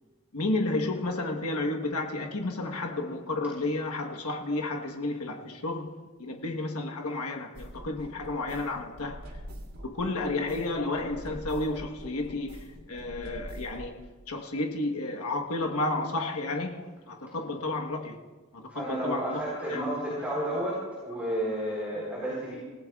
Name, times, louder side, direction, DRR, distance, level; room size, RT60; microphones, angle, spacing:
voice 1, 0.3-9.4 9.8-18.2 18.5-20.1, left 2 dB, 85° left, 1.2 m, -32 dB
sound 1, 7.5-13.9, equal, 80° right, 2.6 m, -44 dB
voice 2, 18.7-22.6, right 1 dB, 5° right, 3.8 m, -31 dB
27.0 x 16.5 x 2.4 m
head